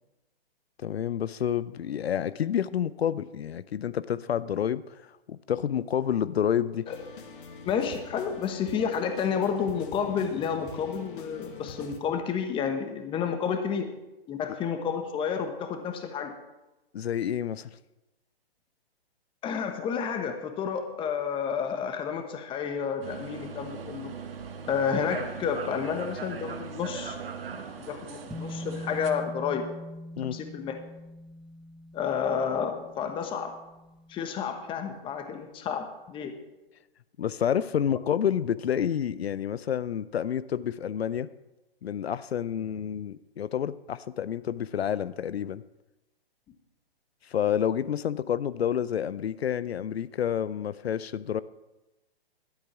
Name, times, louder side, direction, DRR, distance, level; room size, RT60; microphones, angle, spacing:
voice 1, 0.8-6.9 16.9-17.8 30.2-30.4 37.2-41.3 41.8-45.6 47.2-51.4, left 9 dB, 85° left, 16 dB, 0.6 m, -29 dB
sound 1, 6.9-12.0, left 6 dB, 55° left, 2.0 m, -45 dB
voice 2, 7.6-13.9 14.3-16.3 19.4-24.1 24.7-27.2 27.8-29.7 30.3-30.8 31.9-33.5 34.1-36.3, left 7 dB, 15° left, 6 dB, 1.1 m, -30 dB
sound 2, 23.0-29.1, right 6 dB, 70° right, 1.5 m, -39 dB
sound 3, 28.3-34.9, left 1 dB, ahead, 0.9 m, -43 dB
12.0 x 8.2 x 6.0 m, 1.0 s
hypercardioid pair, 135°, 31 cm